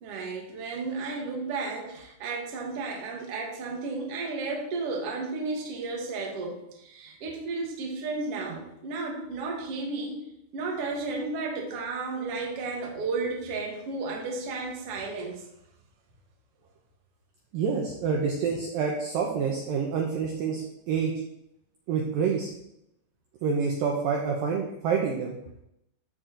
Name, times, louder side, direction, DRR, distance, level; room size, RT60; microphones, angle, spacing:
voice 1, 0.0-10.2 10.5-15.4, right 3 dB, 55° right, 0 dB, 1.7 m, -33 dB
voice 2, 17.5-21.1 21.9-22.5 23.4-25.4, right 6 dB, 75° right, 0 dB, 2.1 m, -27 dB
13.5 x 4.6 x 3.9 m, 0.81 s
omnidirectional pair, 5.0 m